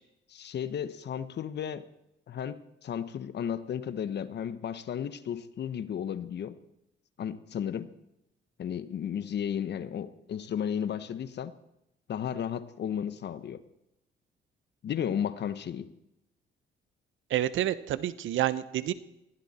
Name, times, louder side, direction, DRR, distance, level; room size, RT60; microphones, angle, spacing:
voice 1, 0.3-1.8 2.3-6.6 7.2-7.9 8.6-11.5 12.1-13.6 14.8-15.9, left 8 dB, 60° left, 13 dB, 1.2 m, -34 dB
voice 2, 17.3-18.9, right 12 dB, 80° right, 15 dB, 1.0 m, -28 dB
20.5 x 15.5 x 4.4 m, 0.85 s
cardioid pair, 90°, 20 cm